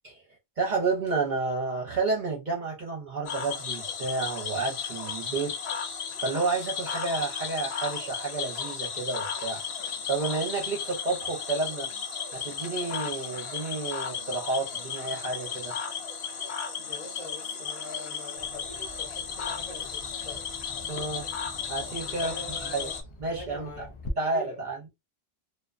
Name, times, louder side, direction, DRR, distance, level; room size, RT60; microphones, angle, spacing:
voice 1, 0.6-5.5 6.2-9.6 10.1-11.9 12.3-15.7 20.9-21.3 21.7-22.9 23.2-23.9 24.2-24.9, right 3 dB, 50° right, 0.8 m, -30 dB
Cricket / Frog, 3.3-23.0, left 6 dB, 75° left, 0.8 m, -35 dB
voice 2, 16.8-20.4 22.2-23.0 23.3-23.9 24.1-24.6, left 2 dB, 35° left, 0.9 m, -44 dB
Bird vocalization bird call bird song, 18.4-24.1, left 3 dB, 55° left, 0.3 m, -47 dB
2.4 x 2.2 x 2.4 m
omnidirectional pair, 1.1 m